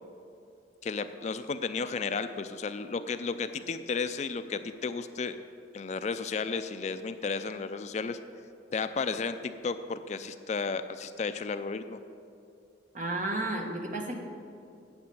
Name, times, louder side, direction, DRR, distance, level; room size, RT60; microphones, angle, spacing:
voice 1, 0.8-5.4 5.7-8.2 8.7-12.0, left 4 dB, 40° left, 10 dB, 0.4 m, -33 dB
voice 2, 12.9-14.2, right 2 dB, 40° right, 1 dB, 1.3 m, -32 dB
8.8 x 8.3 x 7.8 m, 2.6 s
head